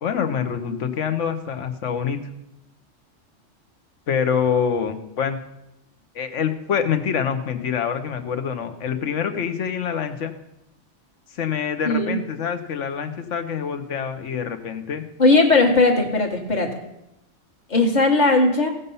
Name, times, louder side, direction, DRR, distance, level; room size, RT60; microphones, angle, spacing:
voice 1, 0.0-2.2 4.1-5.4 6.1-10.3 11.3-15.0, left 7 dB, 75° left, 9 dB, 1.2 m, -25 dB
voice 2, 11.8-12.2 15.2-16.7 17.7-18.7, left 3 dB, 35° left, 3 dB, 1.5 m, -18 dB
16.5 x 5.5 x 5.5 m, 0.87 s
omnidirectional pair, 1.3 m